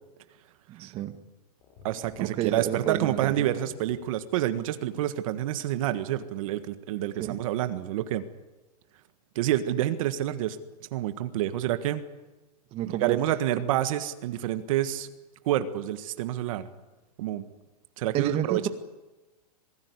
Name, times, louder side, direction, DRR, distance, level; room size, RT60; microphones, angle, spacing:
voice 1, 0.7-1.2 2.2-3.5 7.2-7.4 12.7-13.2 18.1-18.7, right 11 dB, 30° right, 8 dB, 1.6 m, -30 dB
sound 1, 1.6-4.1, left 6 dB, 50° left, 6.9 m, -53 dB
voice 2, 1.8-8.2 9.3-10.6 10.9-12.0 13.0-15.1 15.4-16.7 17.2-17.4 18.0-18.7, right 12 dB, 55° right, 10 dB, 1.7 m, -28 dB
26.0 x 18.0 x 9.7 m, 1.1 s
supercardioid pair, 150°, 20 cm